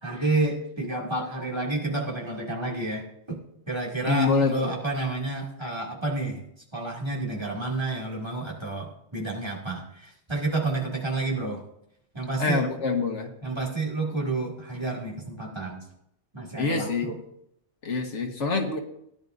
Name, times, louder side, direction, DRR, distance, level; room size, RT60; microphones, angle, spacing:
voice 1, 0.0-3.4 3.7-6.4 6.7-11.6 12.1-12.7 13.4-15.8 16.3-17.2, right 2 dB, 25° right, -2 dB, 2.4 m, -30 dB
voice 2, 4.1-4.7 12.4-13.3 16.6-17.1 17.8-18.8, left 4 dB, 90° left, 3 dB, 1.7 m, -25 dB
17.0 x 10.5 x 2.6 m, 0.78 s
omnidirectional pair, 1.2 m